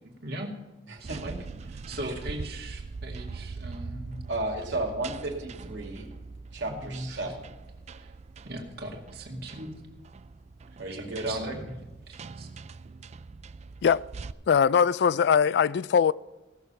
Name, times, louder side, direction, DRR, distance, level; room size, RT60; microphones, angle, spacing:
voice 1, 0.2-0.5 1.0-1.3 1.7-4.2 6.7-7.3 7.9-8.1 8.4-9.7 11.0-11.7 12.1-12.5, right 1 dB, 60° right, 2.2 m, -39 dB
voice 2, 0.9-1.3 2.0-2.1 4.3-6.1 6.5-7.5 10.8-11.6, right 2 dB, 80° right, 2.6 m, -33 dB
sound 1, 1.0-14.3, right 4 dB, 40° right, 0.4 m, -42 dB
voice 3, 14.5-16.1, left 7 dB, 65° left, 0.3 m, -21 dB
17.0 x 7.0 x 5.7 m
head